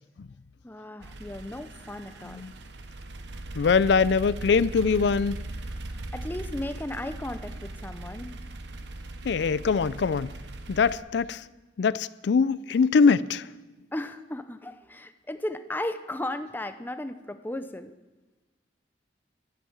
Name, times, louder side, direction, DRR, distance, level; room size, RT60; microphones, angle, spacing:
voice 1, 0.6-2.4 6.1-8.3 13.9-17.9, left 1 dB, 10° left, 0.6 m, -35 dB
sound 1, 1.0-11.0, right 2 dB, 70° right, 1.0 m, -39 dB
voice 2, 3.5-5.4 9.2-10.3 10.7-11.4 11.8-13.5, left 5 dB, 65° left, 0.4 m, -23 dB
12.0 x 10.0 x 8.0 m
head